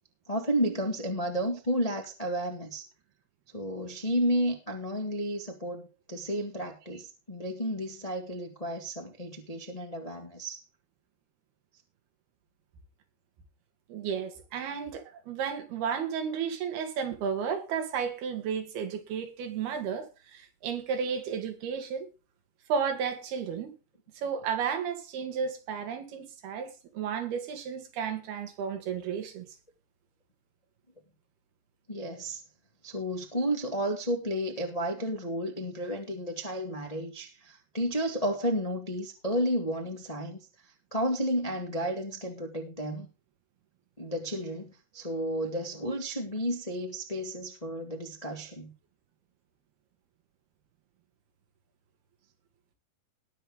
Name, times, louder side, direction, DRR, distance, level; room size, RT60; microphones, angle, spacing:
voice 1, 0.3-2.8 3.5-10.6 31.9-32.4 32.8-40.4 40.9-43.1 44.0-48.7, equal, 65° left, 0.3 m, -32 dB
voice 2, 13.9-22.1 22.7-23.7 24.2-29.5, right 7 dB, 65° right, 3.8 m, -33 dB
20.0 x 6.9 x 3.6 m
omnidirectional pair, 5.0 m